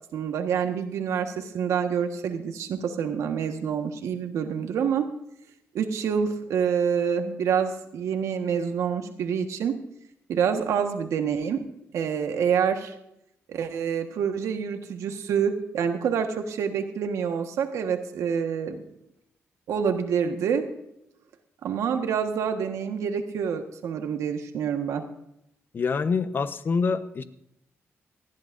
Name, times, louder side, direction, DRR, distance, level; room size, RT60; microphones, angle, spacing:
voice 1, 0.1-5.1 5.7-9.8 10.3-11.7 11.9-12.9 13.5-18.8 19.7-20.7 21.6-25.0, right 7 dB, 90° right, 6 dB, 1.5 m, -27 dB
voice 2, 25.7-27.2, left 5 dB, 45° left, 11 dB, 0.9 m, -26 dB
19.5 x 14.5 x 2.6 m, 0.78 s
cardioid pair, 115°, 5 cm